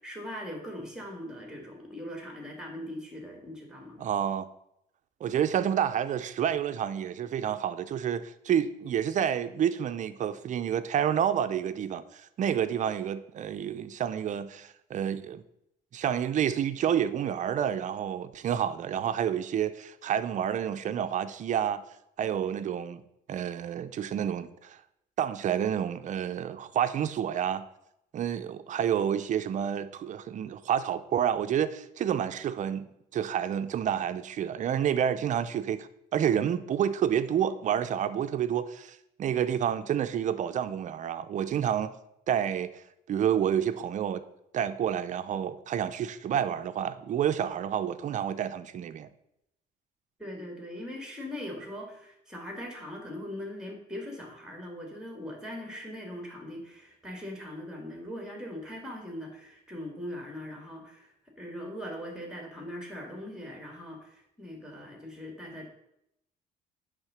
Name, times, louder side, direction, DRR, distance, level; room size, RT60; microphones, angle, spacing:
voice 1, 0.0-4.1 50.2-61.1 61.4-64.1 64.4-65.7, left 1 dB, 5° right, 2.2 m, -40 dB
voice 2, 4.0-4.5 5.2-15.4 15.9-21.8 22.2-23.0 23.3-24.8 25.2-27.6 28.1-41.9 42.3-42.7 43.1-44.2 44.5-49.1, right 9 dB, 50° right, 0.6 m, -29 dB
9.7 x 3.7 x 6.3 m
cardioid pair, 120°, 16 cm